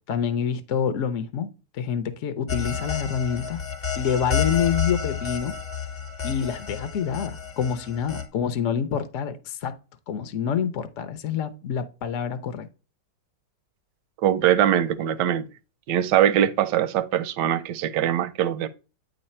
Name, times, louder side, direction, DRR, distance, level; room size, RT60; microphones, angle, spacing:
voice 1, 0.1-3.6 4.0-5.5 6.2-9.7 10.1-12.7, left 7 dB, 55° left, 0.9 m, -27 dB
sound 1, 2.5-8.3, left 7 dB, 30° left, 1.0 m, -30 dB
voice 2, 14.2-15.5 15.9-18.7, right 11 dB, 80° right, 1.2 m, -22 dB
9.3 x 3.2 x 4.2 m
omnidirectional pair, 1.9 m